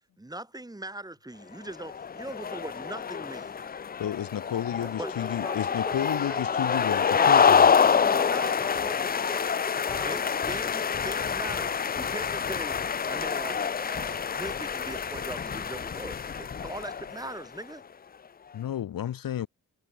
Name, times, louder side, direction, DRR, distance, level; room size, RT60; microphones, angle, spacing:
voice 1, 0.2-3.5 5.0-5.1 7.1-8.6 10.0-10.2 10.5-12.8 13.1-17.8, right 2 dB, 10° right, 5.5 m, -40 dB
sound 1, 1.8-17.4, left 6 dB, 30° left, 0.5 m, -27 dB
voice 2, 4.0-7.7 18.5-19.5, left 10 dB, 75° left, 1.7 m, -32 dB
voice 3, 4.8-7.0 7.8-10.3, left 1 dB, 10° left, 2.4 m, -42 dB
wide cardioid pair, 145°, 34 cm